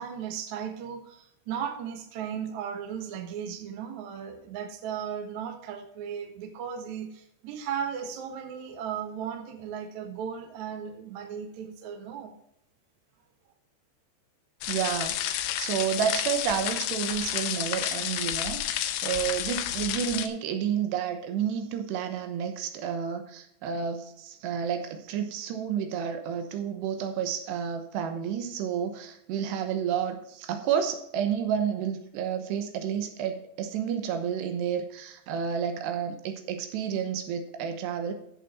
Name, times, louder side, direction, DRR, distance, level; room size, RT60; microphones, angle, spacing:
voice 1, 0.0-12.3, right 8 dB, 60° right, 5 dB, 2.1 m, -36 dB
sound 1, 14.6-20.3, left 11 dB, 85° left, 2.9 m, -30 dB
voice 2, 14.7-15.2 15.6-38.1, right 8 dB, 75° right, 7 dB, 3.1 m, -30 dB
11.0 x 7.5 x 4.3 m, 0.73 s
omnidirectional pair, 5.0 m